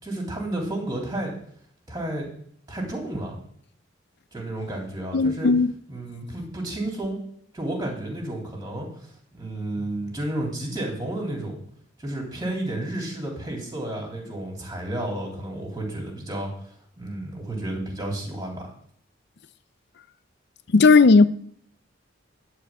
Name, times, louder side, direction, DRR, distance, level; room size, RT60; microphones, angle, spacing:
voice 1, 0.0-1.3 1.9-2.3 2.7-3.3 4.3-5.5 5.9-7.2 7.5-11.6 12.0-18.7, right 1 dB, 20° right, 3.4 m, -31 dB
voice 2, 5.1-5.7 20.7-21.3, left 4 dB, 55° left, 0.5 m, -15 dB
11.5 x 4.9 x 8.5 m
head